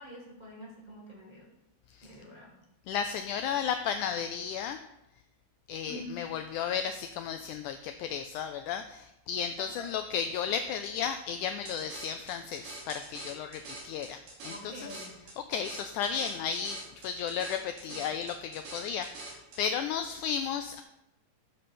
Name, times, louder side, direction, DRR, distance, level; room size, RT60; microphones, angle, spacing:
voice 1, 0.0-1.4 2.0-2.5 5.8-6.3 9.6-9.7 14.5-15.2 17.9-18.0, equal, 15° right, -5 dB, 2.7 m, -46 dB
voice 2, 2.9-4.8 5.7-14.7 15.5-20.8, left 7 dB, 80° left, 8 dB, 1.8 m, -34 dB
sound 1, 11.7-19.6, right 2 dB, 70° right, 4.2 m, -45 dB
13.5 x 6.8 x 4.3 m, 0.88 s
omnidirectional pair, 4.0 m